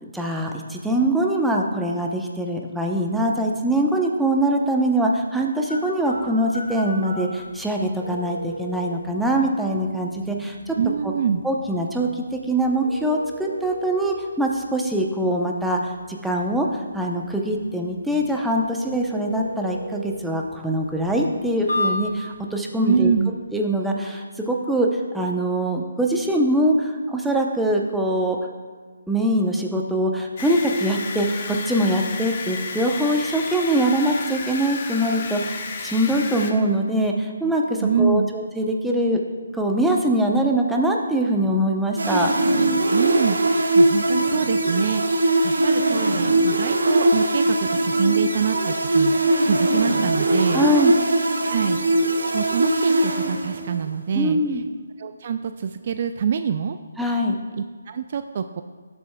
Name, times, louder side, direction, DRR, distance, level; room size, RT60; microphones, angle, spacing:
voice 1, 0.0-10.8 11.4-16.7 16.9-23.1 23.5-24.9 25.1-28.4 29.1-39.2 39.5-42.3 50.5-50.9 54.1-54.6 57.0-57.4, right 1 dB, 5° right, 0 dB, 0.8 m, -23 dB
sound 1, 5.7-22.4, equal, 85° left, 2.0 m, -36 dB
voice 2, 10.8-11.4 22.8-23.3 37.8-38.3 42.9-50.7 51.4-54.6 55.0-56.8 57.6-58.6, right 7 dB, 45° right, 9 dB, 0.3 m, -25 dB
sound 2, 30.4-36.5, left 4 dB, 40° left, 0.9 m, -32 dB
sound 3, 42.0-53.8, right 2 dB, 70° right, 1.2 m, -20 dB
17.5 x 7.8 x 2.3 m, 1.5 s
figure-of-eight pair, 145°, 0 cm